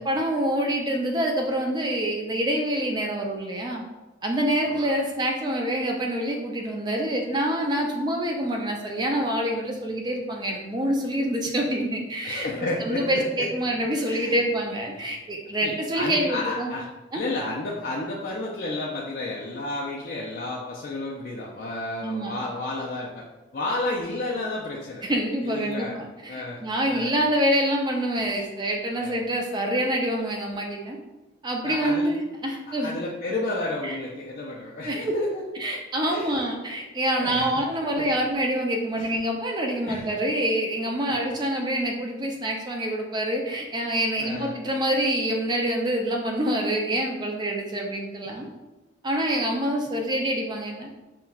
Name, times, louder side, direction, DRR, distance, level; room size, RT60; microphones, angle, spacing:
voice 1, 0.0-3.8 4.2-12.5 12.8-16.7 17.1-17.2 22.0-22.4 25.0-31.0 31.4-32.9 33.8-34.0 34.9-35.1 35.6-48.5 49.0-51.0, right 1 dB, 20° right, 1 dB, 0.4 m, -26 dB
voice 2, 4.6-4.9 12.2-13.7 14.1-14.4 14.9-15.0 15.6-16.9 17.1-23.2 23.5-25.0 25.4-26.0 26.3-27.1 28.3-28.4 29.0-29.2 31.6-32.1 32.8-35.4 36.1-36.4 37.1-37.6 38.0-38.1 39.0-39.2 39.9-40.1 41.1-41.3 44.2-44.5 48.2-48.5, left 2 dB, 50° left, -5 dB, 0.4 m, -32 dB
5.4 x 2.3 x 2.3 m, 1.1 s
head